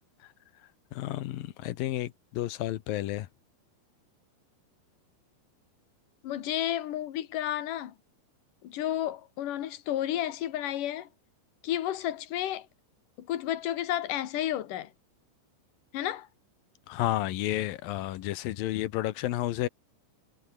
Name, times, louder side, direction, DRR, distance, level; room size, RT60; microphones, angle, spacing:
voice 1, 0.9-3.3 16.9-19.7, left 15 dB, 80° left, 2.0 m, -31 dB
voice 2, 6.2-7.9 8.6-11.1 11.6-12.7 13.2-14.9 15.9-16.3, left 12 dB, 60° left, 2.5 m, -31 dB
omnidirectional pair, 5.6 m